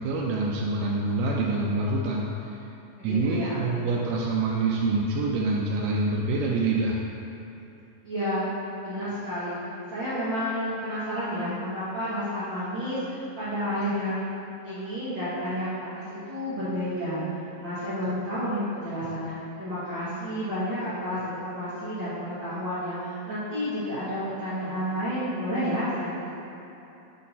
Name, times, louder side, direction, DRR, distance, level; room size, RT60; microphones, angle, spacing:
voice 1, 0.0-2.6 3.0-7.0, right 2 dB, 80° right, -3 dB, 2.0 m, -26 dB
voice 2, 3.0-3.7 8.0-8.5 8.8-14.2 14.6-26.3, equal, 65° right, -12 dB, 1.1 m, -31 dB
7.4 x 4.1 x 4.1 m, 3.0 s
omnidirectional pair, 4.1 m